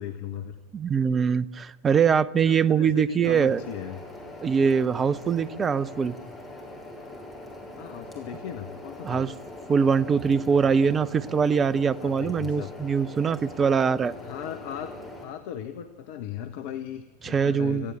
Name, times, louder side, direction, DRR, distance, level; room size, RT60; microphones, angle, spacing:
voice 1, 0.0-0.6 2.4-4.0 5.3-5.7 7.8-9.3 12.0-12.7 14.2-14.9 15.2-17.9, left 10 dB, 50° left, 8 dB, 1.2 m, -37 dB
voice 2, 0.7-3.6 4.4-6.2 9.0-9.3 9.7-14.1 17.2-17.9, right 6 dB, 20° right, 17 dB, 0.7 m, -23 dB
sound 1, 3.2-15.2, left 1 dB, 5° left, 6.1 m, -42 dB
26.0 x 15.0 x 8.8 m, 1.2 s
figure-of-eight pair, 90°, 0 cm